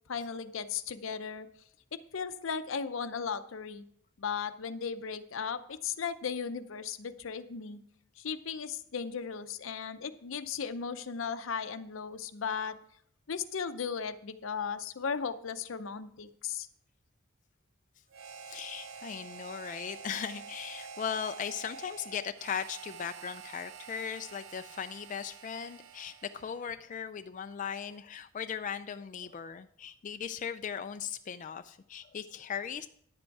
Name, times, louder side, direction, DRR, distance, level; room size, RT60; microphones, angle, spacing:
voice 1, 0.1-1.5 2.1-3.8 4.2-7.8 8.2-12.7 13.3-16.7, left 6 dB, 75° left, 12 dB, 0.6 m, -36 dB
Harmonica, 18.1-26.7, right 6 dB, 75° right, 0.7 m, -48 dB
voice 2, 18.5-32.9, left 7 dB, 40° left, 9 dB, 0.3 m, -38 dB
10.5 x 7.8 x 4.6 m, 0.65 s
head